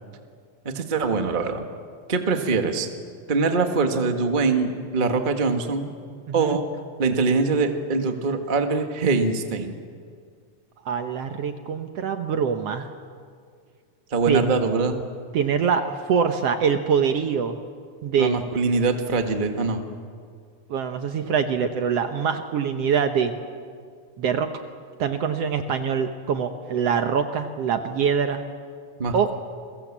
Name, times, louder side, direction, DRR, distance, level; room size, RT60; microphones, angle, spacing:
voice 1, 0.6-1.6 2.1-2.9 3.3-5.9 6.3-6.6 7.0-9.7 14.1-15.0 18.2-19.8 29.0-29.3, right 4 dB, 25° right, 5 dB, 1.1 m, -23 dB
voice 2, 6.3-6.6 10.9-12.9 14.3-14.5 15.3-17.6 18.0-18.4 20.7-23.3 24.2-24.5 25.0-28.4 29.1-29.3, right 7 dB, 65° right, 7 dB, 1.8 m, -24 dB
30.0 x 23.0 x 7.4 m, 2.1 s
omnidirectional pair, 3.5 m